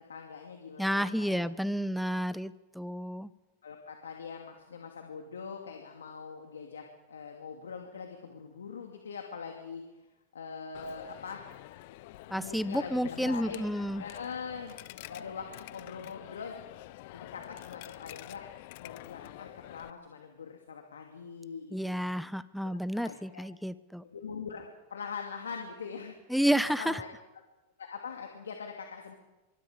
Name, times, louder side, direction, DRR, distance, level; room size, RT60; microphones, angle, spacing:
voice 1, 0.1-1.5 3.6-9.8 10.3-11.4 12.4-13.7 14.0-14.7 15.0-16.6 17.1-18.4 18.8-22.1 22.6-23.4 24.0-26.1 26.4-27.1 27.8-29.1, left 5 dB, 90° left, 2 dB, 2.6 m, -43 dB
voice 2, 0.8-3.3 12.3-14.0 21.7-24.0 26.3-27.0, equal, ahead, 15 dB, 1.1 m, -30 dB
Coin (dropping), 10.7-19.9, left 17 dB, 60° left, 0.9 m, -47 dB
25.0 x 23.5 x 5.2 m, 1.1 s
hypercardioid pair, 100°, 0 cm